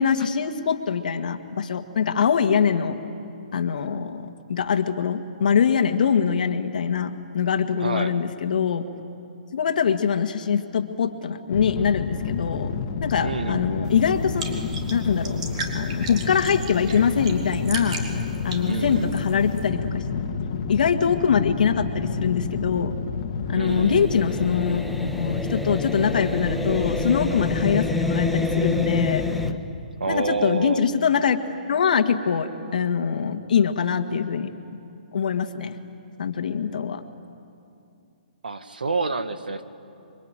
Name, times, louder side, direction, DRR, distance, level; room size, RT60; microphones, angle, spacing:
voice 1, 0.0-3.0 3.5-8.9 9.5-12.7 13.0-14.4 14.9-15.4 15.7-18.0 18.4-20.0 20.7-23.0 23.5-29.2 30.1-31.4 31.7-34.5 35.1-35.8 36.2-37.0, left 7 dB, 65° left, 7 dB, 1.9 m, -23 dB
voice 2, 7.8-8.1 13.2-13.7 18.6-19.1 23.5-24.1 30.0-30.9 38.4-39.6, right 4 dB, 85° right, 10 dB, 1.7 m, -28 dB
sound 1, 11.5-29.6, left 5 dB, 45° left, 1.9 m, -30 dB
sound 2, 13.8-19.7, right 4 dB, 50° right, 4.3 m, -36 dB
sound 3, 23.7-29.5, left 1 dB, ahead, 1.1 m, -28 dB
28.0 x 23.5 x 9.1 m, 2.6 s
hypercardioid pair, 140°, 5 cm